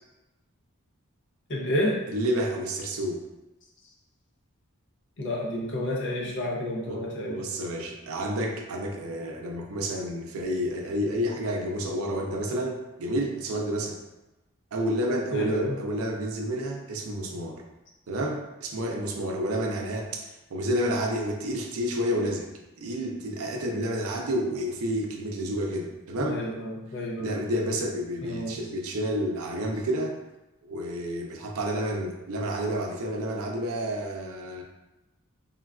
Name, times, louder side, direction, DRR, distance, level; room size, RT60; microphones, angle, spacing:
voice 1, 1.5-2.0 5.2-7.4 15.3-15.8 26.2-27.4 28.2-28.6, left 1 dB, 55° left, -2 dB, 0.6 m, -30 dB
voice 2, 2.1-3.2 6.9-14.0 14.7-17.6 18.1-22.5 22.8-26.4 27.2-30.2 30.7-34.6, equal, 75° right, 1 dB, 0.5 m, -30 dB
3.6 x 2.3 x 2.3 m, 1.0 s
head